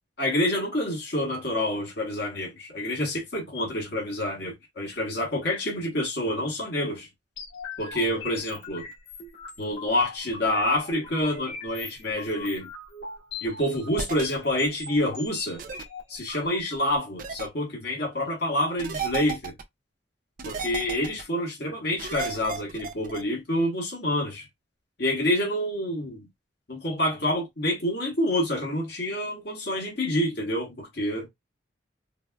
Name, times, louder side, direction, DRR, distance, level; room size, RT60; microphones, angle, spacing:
voice 1, 0.2-7.1 7.8-8.9 9.6-12.7 13.4-15.6 16.1-19.5 20.4-24.5 25.0-26.3 26.7-31.3, left 1 dB, 60° left, 1.1 m, -27 dB
sound 1, 7.4-17.0, left 4 dB, 80° left, 1.7 m, -41 dB
sound 2, 14.0-14.2 15.6-15.8 17.2-17.5 18.8-19.6 20.4-21.2 22.0-23.2, right 5 dB, 45° right, 0.4 m, -33 dB
3.9 x 2.0 x 2.2 m
head